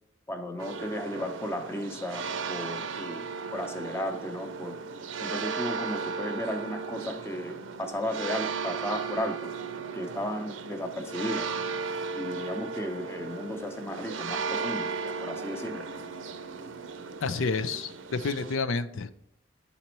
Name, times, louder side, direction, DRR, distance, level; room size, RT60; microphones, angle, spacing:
voice 1, 0.3-4.8 5.2-9.5 9.9-11.5 12.1-14.9 15.2-15.8, left 1 dB, 15° left, 4 dB, 0.7 m, -35 dB
sound 1, 0.6-18.5, right 5 dB, 75° right, 0.6 m, -36 dB
voice 2, 17.2-19.1, left 4 dB, 90° left, 9 dB, 0.5 m, -29 dB
10.0 x 4.2 x 3.0 m, 0.81 s
head